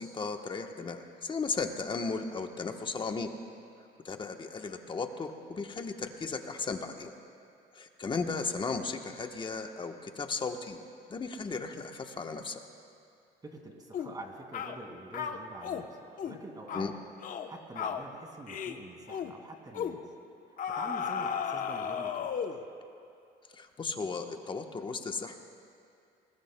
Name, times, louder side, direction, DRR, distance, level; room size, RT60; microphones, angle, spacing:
voice 1, 0.0-3.3 4.0-7.1 7.7-10.8 11.1-12.6 16.7-16.9 23.5-25.4, left 4 dB, 30° left, 5 dB, 1.1 m, -35 dB
voice 2, 13.4-16.9 17.4-20.0 20.5-22.6, right 2 dB, 25° right, 2 dB, 2.2 m, -46 dB
sound 1, 13.9-14.2 14.5-14.8 15.1-15.9 16.2-16.4 16.7-16.9 17.2-17.5 17.8-18.0 18.5-18.8 19.1-19.3 19.7-20.0 20.6-22.6, left 7 dB, 50° left, 0.9 m, -34 dB
25.0 x 20.0 x 2.2 m, 2.5 s
cardioid pair, 110°, 17 cm